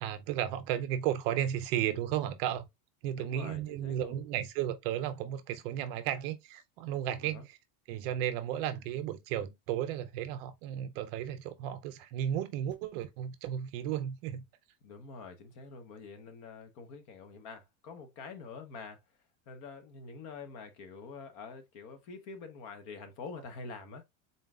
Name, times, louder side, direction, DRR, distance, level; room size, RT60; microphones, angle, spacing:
voice 1, 0.0-2.7 3.0-7.6 7.9-14.4, right 11 dB, 50° right, 0.5 m, -34 dB
voice 2, 3.2-4.2 7.2-7.4 14.8-19.0 19.5-24.0, left 4 dB, 45° left, 0.9 m, -46 dB
3.9 x 3.8 x 2.3 m
supercardioid pair, 165°, 40 cm